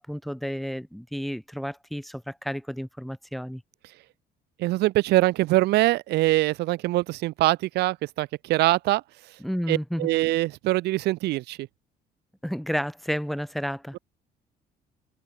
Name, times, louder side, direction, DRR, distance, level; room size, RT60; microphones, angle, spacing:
voice 1, 0.0-3.6 9.4-10.1 12.4-14.0, equal, ahead, 5.5 m, -31 dB
voice 2, 4.6-9.0 9.7-11.7, right 18 dB, 80° right, 0.9 m, -23 dB
cardioid pair, 110°, 17 cm